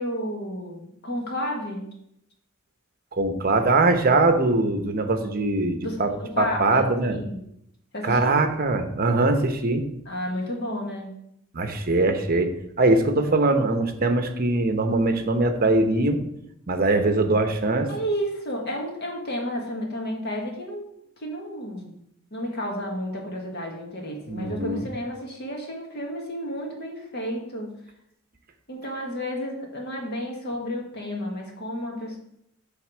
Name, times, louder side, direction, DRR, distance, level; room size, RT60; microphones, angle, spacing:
voice 1, 0.0-1.9 5.8-7.4 7.9-8.4 10.0-11.1 17.9-20.9 21.2-22.0 22.3-27.7 28.7-32.2, equal, 50° left, 0 dB, 1.6 m, -31 dB
voice 2, 3.1-7.2 8.0-9.8 11.5-12.5 12.8-16.2 16.7-17.9 24.3-24.8, right 2 dB, 45° right, 6 dB, 0.8 m, -22 dB
7.8 x 3.6 x 6.2 m, 0.76 s
head